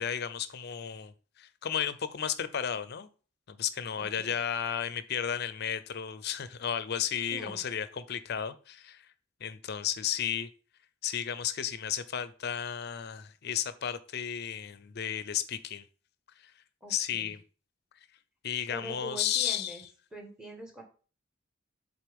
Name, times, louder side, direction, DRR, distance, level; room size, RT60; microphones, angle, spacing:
voice 1, 0.0-3.1 3.5-9.0 9.4-10.5 11.0-15.8 16.4-16.5 16.9-17.4 18.4-19.8, left 9 dB, 55° left, 0.5 m, -33 dB
voice 2, 4.0-4.3 7.3-7.6 16.8-17.3 18.7-19.8 20.1-20.8, equal, 5° right, 1.3 m, -44 dB
7.6 x 4.0 x 3.5 m
head